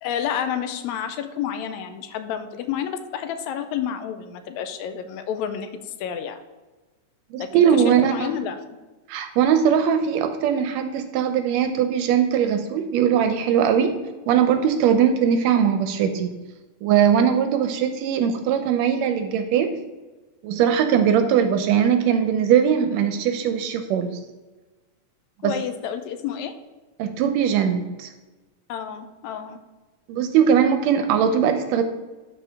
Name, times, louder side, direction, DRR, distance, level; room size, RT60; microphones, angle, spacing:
voice 1, 0.0-6.4 7.4-8.6 25.4-26.5 28.7-29.6, left 9 dB, 80° left, 9 dB, 1.8 m, -30 dB
voice 2, 7.3-8.3 9.1-16.3 16.8-19.8 20.4-24.2 25.4-25.5 27.0-28.1 30.1-31.8, right 8 dB, 80° right, 8 dB, 1.7 m, -20 dB
11.5 x 4.4 x 3.4 m, 1.2 s
omnidirectional pair, 3.4 m